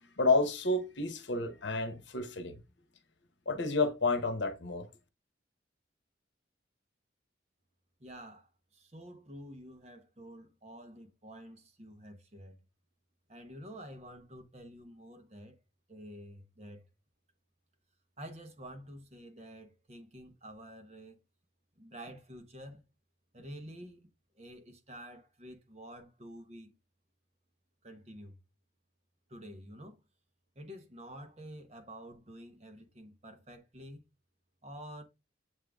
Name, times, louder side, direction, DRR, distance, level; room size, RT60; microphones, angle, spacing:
voice 1, 0.2-2.6 3.5-4.9, left 3 dB, 70° left, 1.0 m, -30 dB
voice 2, 8.0-12.6 13.3-15.6 15.9-16.8 18.2-21.2 21.8-22.8 23.3-24.1 24.3-26.7 27.8-28.4 29.3-30.0 30.5-34.0 34.6-35.0, equal, 35° right, 1.1 m, -49 dB
7.4 x 3.8 x 3.5 m
head